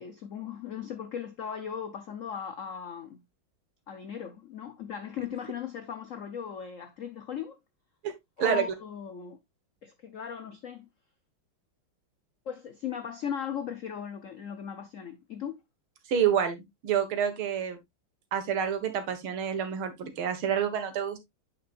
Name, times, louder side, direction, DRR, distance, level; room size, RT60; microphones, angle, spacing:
voice 1, 0.0-3.2 3.9-7.6 8.4-9.4 9.8-10.9 12.5-15.6, left 8 dB, 80° left, 0.7 m, -37 dB
voice 2, 16.1-16.6 16.8-17.8 18.3-21.3, right 8 dB, 80° right, 2.2 m, -28 dB
8.4 x 6.2 x 2.4 m
omnidirectional pair, 2.3 m